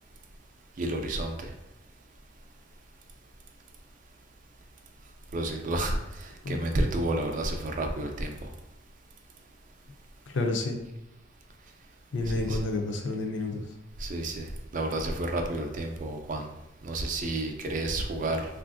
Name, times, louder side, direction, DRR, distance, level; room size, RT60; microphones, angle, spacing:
voice 1, 0.8-1.4 5.3-8.3 12.3-12.6 14.0-14.5 14.7-16.5 16.8-18.5, right 1 dB, 45° right, 4 dB, 0.4 m, -30 dB
voice 2, 10.3-10.8 12.1-13.6, left 2 dB, 70° left, 3 dB, 0.5 m, -29 dB
3.3 x 2.5 x 2.5 m, 0.94 s
head